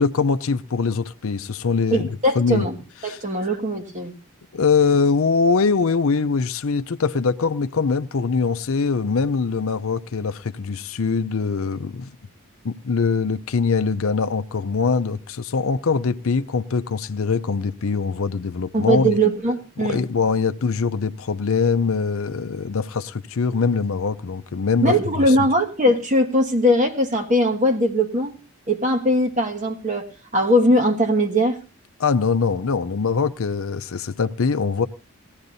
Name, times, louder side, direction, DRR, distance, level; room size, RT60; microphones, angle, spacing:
voice 1, 0.0-2.1 2.3-2.7 3.0-3.2 4.5-12.1 12.6-19.2 19.8-25.0 25.3-25.4 32.0-34.9, left 5 dB, 70° left, 0.6 m, -22 dB
voice 2, 1.9-2.8 3.0-4.1 18.7-20.1 24.8-28.3 28.7-31.6, equal, 35° right, 1.3 m, -20 dB
19.5 x 14.0 x 2.7 m
head